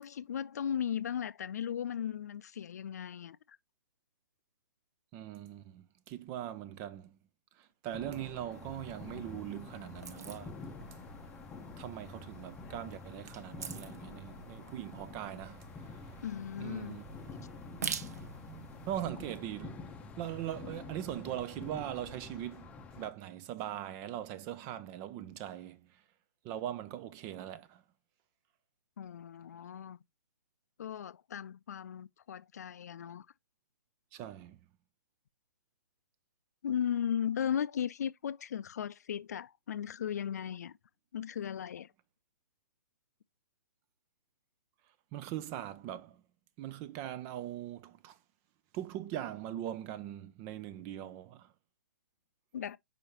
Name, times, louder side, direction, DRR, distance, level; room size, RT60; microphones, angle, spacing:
voice 1, 0.0-3.4 16.2-17.0 29.0-30.0 30.8-33.3 36.6-40.8 41.1-41.9 52.5-52.8, left 9 dB, 55° left, 0.5 m, -36 dB
voice 2, 5.1-7.2 7.6-10.7 11.8-15.9 16.6-17.0 18.9-26.0 26.4-27.8 34.1-34.6 45.1-46.2 46.6-48.2 48.7-51.5, right 12 dB, 25° right, 0.4 m, -41 dB
sound 1, 7.9-23.1, left 4 dB, 10° left, 0.7 m, -48 dB
sound 2, 8.5-19.0, right 7 dB, 55° right, 0.8 m, -47 dB
6.3 x 5.2 x 2.9 m
figure-of-eight pair, 130°, 10 cm